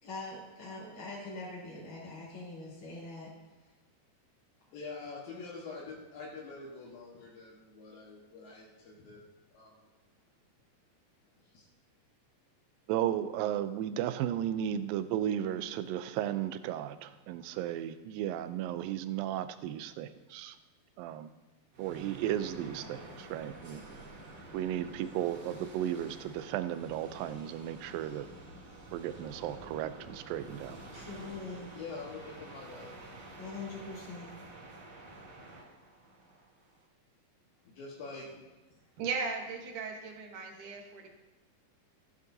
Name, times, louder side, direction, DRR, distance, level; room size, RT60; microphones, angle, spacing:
voice 1, 0.0-3.3 30.9-31.7 33.4-34.3, left 3 dB, 25° left, -9 dB, 3.0 m, -43 dB
voice 2, 4.7-9.2 9.5-10.0 11.4-11.7 31.7-33.0 37.6-38.4 38.7-38.8, left 3 dB, 80° left, -5 dB, 3.2 m, -45 dB
voice 3, 12.9-20.6 21.0-21.3 21.8-23.8 24.5-28.3 28.9-30.8, right 11 dB, 85° right, 11 dB, 2.3 m, -34 dB
sound 1, 21.7-36.9, right 2 dB, 45° right, 3.7 m, -49 dB
voice 4, 39.0-41.1, right 4 dB, 65° right, 1 dB, 2.6 m, -37 dB
14.5 x 9.1 x 2.7 m, 1.2 s
omnidirectional pair, 4.1 m